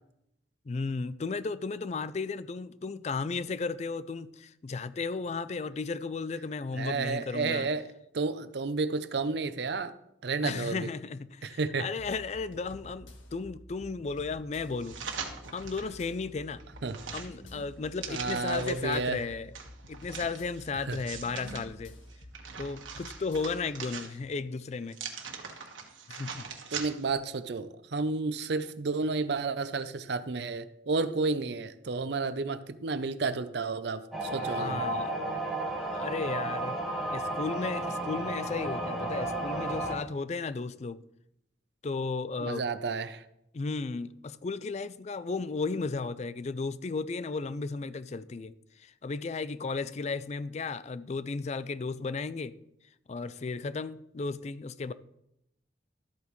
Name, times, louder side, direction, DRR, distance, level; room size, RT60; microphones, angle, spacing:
voice 1, 0.7-7.7 10.4-15.0 15.5-16.6 17.1-19.5 19.9-21.9 22.6-25.0 26.1-26.5 34.4-35.1 35.9-36.8 37.1-41.0 41.8-42.6 43.5-52.6 53.1-54.9, left 4 dB, 35° left, 0.3 m, -34 dB
voice 2, 6.7-7.9 8.1-9.9 10.2-10.9 11.4-11.8 16.8-17.0 18.1-19.2 20.7-21.0 26.7-34.8 42.4-43.2, right 4 dB, 60° right, 0.5 m, -31 dB
sound 1, 12.0-23.7, left 1 dB, 90° left, 1.5 m, -50 dB
sound 2, 14.8-15.9 16.4-18.9 19.5-21.6 22.1-24.4 24.9-27.2 27.6-27.7, right 6 dB, 85° right, 1.5 m, -42 dB
sound 3, 34.1-39.9, right 2 dB, ahead, 1.4 m, -33 dB
13.0 x 8.3 x 3.1 m
head